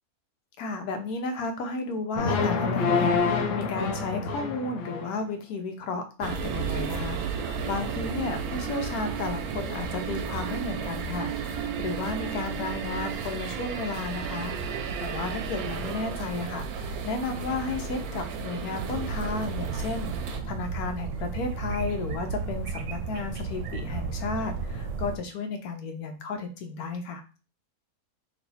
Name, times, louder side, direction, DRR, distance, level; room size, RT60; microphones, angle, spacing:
voice 1, 0.6-20.1 20.4-27.2, left 3 dB, 85° left, 6 dB, 1.2 m, -33 dB
sound 1, 2.2-5.2, left 4 dB, 65° left, 1.0 m, -26 dB
sound 2, 6.2-20.4, right 6 dB, 90° right, 1.1 m, -33 dB
sound 3, 18.8-25.2, right 4 dB, 65° right, 0.9 m, -33 dB
3.1 x 2.6 x 4.0 m, 0.33 s
omnidirectional pair, 1.5 m